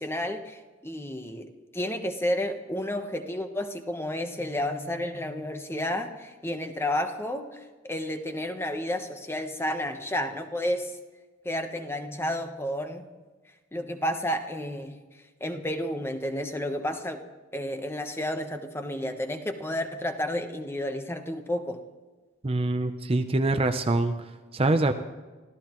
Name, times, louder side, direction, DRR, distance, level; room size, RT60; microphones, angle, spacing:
voice 1, 0.0-10.9 11.4-13.1 13.7-15.0 15.4-17.2 17.5-21.8, left 1 dB, 15° left, 6 dB, 1.0 m, -31 dB
voice 2, 22.4-24.2 24.5-24.9, right 2 dB, 30° right, 7 dB, 0.6 m, -24 dB
25.0 x 15.0 x 3.1 m, 1.3 s
head